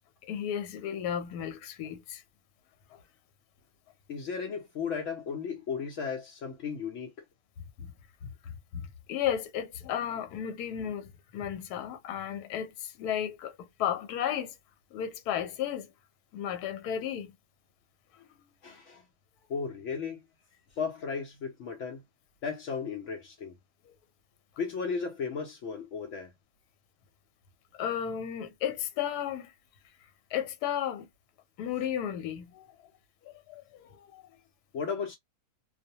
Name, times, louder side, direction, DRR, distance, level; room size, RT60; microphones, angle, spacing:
voice 1, 0.2-2.2 2.9-3.0 7.8-7.9 8.2-14.5 14.9-15.9 16.3-17.3 18.1-18.3 23.8-23.9 27.7-29.5 30.3-31.1 31.6-32.9 33.2-34.2, left 9 dB, 85° left, 1.1 m, -34 dB
voice 2, 4.1-7.1 18.6-19.0 19.5-20.2 20.7-22.0 22.4-23.6 24.6-26.3 34.7-35.1, left 5 dB, 65° left, 0.8 m, -35 dB
2.5 x 2.1 x 2.7 m
omnidirectional pair, 1.6 m